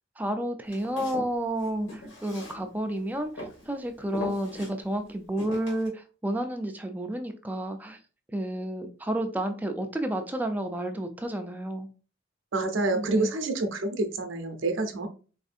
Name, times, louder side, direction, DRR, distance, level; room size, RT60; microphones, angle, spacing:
voice 1, 0.2-8.0 8.3-11.9 12.9-13.3, right 1 dB, 10° right, 0.4 m, -31 dB
Walk footsteps, 0.7-3.0 3.4-3.7 4.1-4.7 5.4-5.9, equal, 80° left, 1.6 m, -40 dB
voice 2, 12.5-15.1, right 2 dB, 80° right, 0.6 m, -27 dB
4.1 x 2.6 x 2.4 m
head